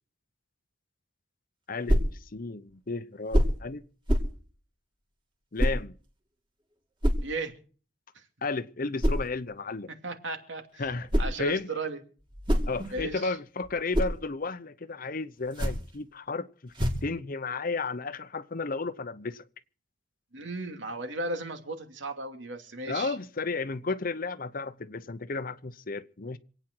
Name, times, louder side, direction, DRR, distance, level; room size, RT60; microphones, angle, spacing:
voice 1, 1.7-3.8 5.5-6.0 8.4-9.9 10.8-11.7 12.7-19.5 22.9-26.4, left 3 dB, 50° left, 0.8 m, -33 dB
sound 1, 1.9-2.2 3.3-3.6 4.1-4.4 5.6-5.8 7.0-7.3 9.0-9.3 10.8-11.4 12.2-13.2 13.6-14.2 15.4-15.9 16.7-17.1, equal, 25° right, 2.7 m, -26 dB
voice 2, 7.2-7.5 10.0-10.6 11.2-12.0 12.9-13.4 20.3-23.1, right 2 dB, 75° right, 2.6 m, -35 dB
26.5 x 9.2 x 4.6 m
head